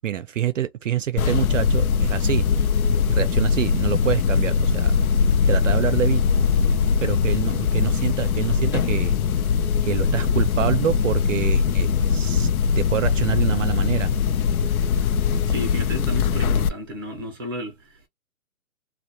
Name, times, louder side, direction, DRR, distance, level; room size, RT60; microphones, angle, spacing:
voice 1, 0.0-2.5 3.1-4.9 5.5-6.2 7.0-9.1 9.8-12.5 12.8-14.1, right 10 dB, 65° right, 0.5 m, -26 dB
sound 1, 1.2-16.7, left 6 dB, 85° left, 0.5 m, -21 dB
voice 2, 15.5-18.1, left 1 dB, 15° right, 0.5 m, -32 dB
2.2 x 2.1 x 2.8 m
hypercardioid pair, 155°, 42 cm